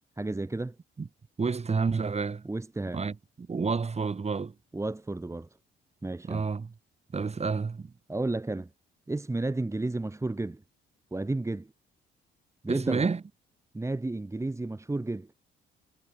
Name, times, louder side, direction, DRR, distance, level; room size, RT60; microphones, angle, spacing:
voice 1, 0.2-0.8 2.4-3.0 4.7-5.5 6.0-6.4 8.1-8.7 9.1-10.6 11.1-11.7 12.6-13.1 13.7-15.3, right 2 dB, 15° right, 2.1 m, -32 dB
voice 2, 1.4-2.4 2.9-4.5 6.2-6.7 7.1-7.9 12.7-13.2, right 4 dB, 30° right, 5.0 m, -29 dB
cardioid pair, 90°, 20 cm